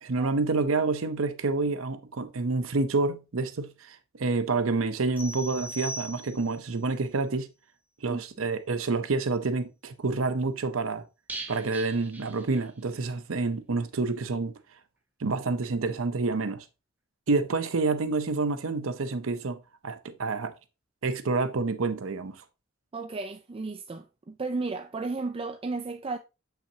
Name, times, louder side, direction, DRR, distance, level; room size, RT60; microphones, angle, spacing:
voice 1, 0.0-7.5 8.0-11.0 11.5-14.5 15.2-16.7 17.3-20.5 21.0-22.4, right 3 dB, 75° right, 0.7 m, -28 dB
sound 1, 5.2-6.7, equal, 10° left, 3.5 m, -39 dB
sound 2, 11.3-13.1 13.3-13.4 13.8-13.9, right 3 dB, 10° right, 1.2 m, -42 dB
voice 2, 22.9-26.2, right 3 dB, 30° right, 0.4 m, -34 dB
7.6 x 5.7 x 2.8 m
head